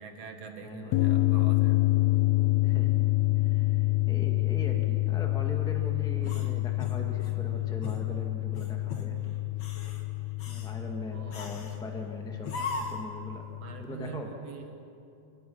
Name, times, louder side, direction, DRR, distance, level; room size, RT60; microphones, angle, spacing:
voice 1, 0.0-1.8 11.1-11.5 13.6-14.7, right 5 dB, 60° right, 5 dB, 2.2 m, -44 dB
voice 2, 0.6-0.9 2.6-2.9 3.3-9.3 10.5-12.5 12.8-13.4 13.8-14.3, left 1 dB, ahead, 2 dB, 1.1 m, -41 dB
sound 1, 0.9-13.8, left 21 dB, 75° left, 1.6 m, -28 dB
sound 2, 6.2-7.4 7.8-8.1 8.5-9.1 9.5-10.0 10.4-10.7 11.3-11.8 12.4-13.1, left 3 dB, 45° left, 2.0 m, -38 dB
29.5 x 18.0 x 5.6 m, 2.6 s
omnidirectional pair, 3.6 m